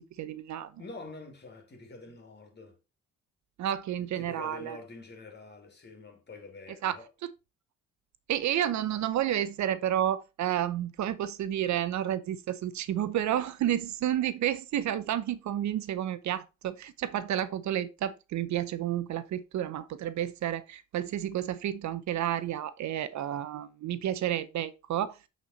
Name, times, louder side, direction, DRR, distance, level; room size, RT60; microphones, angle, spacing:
voice 1, 0.2-0.7 3.6-4.8 6.8-7.0 8.3-25.2, right 11 dB, 70° right, 0.8 m, -31 dB
voice 2, 0.8-2.8 4.0-7.1, left 2 dB, 35° left, 2.9 m, -46 dB
8.5 x 4.3 x 4.3 m
cardioid pair, 90°, 30 cm